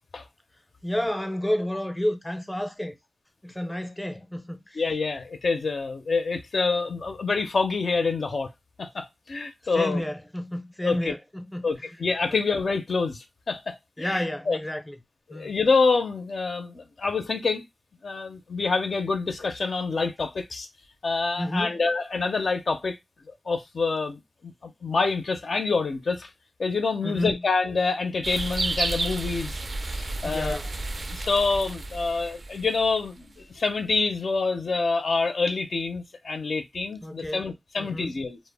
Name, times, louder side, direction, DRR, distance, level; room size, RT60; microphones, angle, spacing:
voice 1, 0.8-2.9 3.4-4.8 9.7-11.7 14.0-15.0 15.3-15.5 21.4-21.8 27.0-27.4 30.2-30.7 37.0-37.5 37.8-38.2, left 1 dB, 10° left, 0.5 m, -31 dB
voice 2, 4.8-8.5 8.8-10.0 10.8-11.1 11.6-14.6 15.3-17.6 18.0-20.7 21.0-23.0 23.5-24.2 24.6-26.3 26.6-29.6 29.9-30.6 31.1-38.4, left 4 dB, 70° left, 0.4 m, -26 dB
sound 1, 28.2-33.2, right 2 dB, 50° right, 0.3 m, -32 dB
2.0 x 2.0 x 3.3 m
wide cardioid pair, 65°, 0 cm